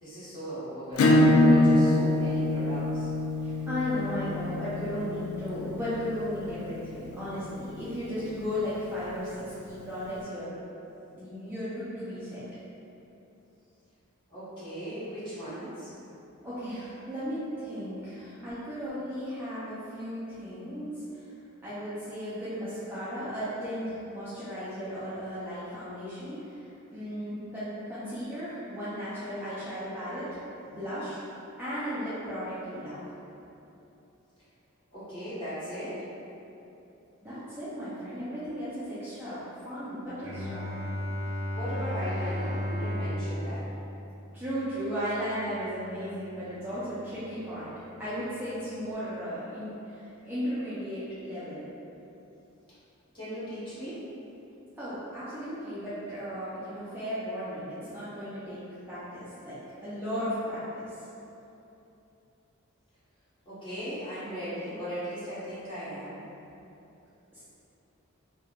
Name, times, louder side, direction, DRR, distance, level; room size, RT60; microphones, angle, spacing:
voice 1, 0.0-3.1 14.3-15.9 34.9-36.0 41.6-43.7 53.1-54.0 63.4-66.2, equal, 25° left, -14 dB, 1.1 m, -37 dB
Acoustic guitar / Strum, 1.0-6.2, left 1 dB, 90° left, 0.3 m, -24 dB
voice 2, 3.4-10.6 11.1-12.4 16.4-21.3 21.6-26.6 26.9-31.2 31.6-33.0 37.2-40.6 44.3-47.7 48.0-51.6 54.8-58.6 58.9-61.1 67.3-67.4, equal, 10° right, -13 dB, 0.4 m, -35 dB
Bowed string instrument, 40.2-45.9, equal, 65° right, 0.6 m, -34 dB
3.2 x 2.1 x 2.3 m, 2.9 s
head